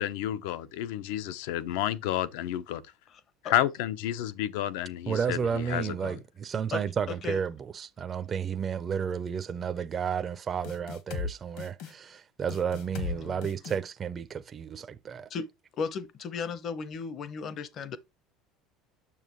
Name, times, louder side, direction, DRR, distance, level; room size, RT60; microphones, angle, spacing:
voice 1, 0.0-2.8 3.4-6.1, left 12 dB, 80° left, 0.6 m, -30 dB
voice 2, 3.1-3.5 6.7-6.8 7.2-7.4 12.9-13.4 15.3-15.5 15.8-18.0, left 5 dB, 30° left, 0.6 m, -36 dB
voice 3, 5.1-15.3, right 7 dB, 20° right, 0.4 m, -32 dB
sound 1, 10.6-11.3 11.6-11.9 12.5-13.1 13.4-13.8, left 6 dB, 60° left, 1.2 m, -36 dB
7.1 x 6.6 x 3.0 m
cardioid pair, 175°, 0 cm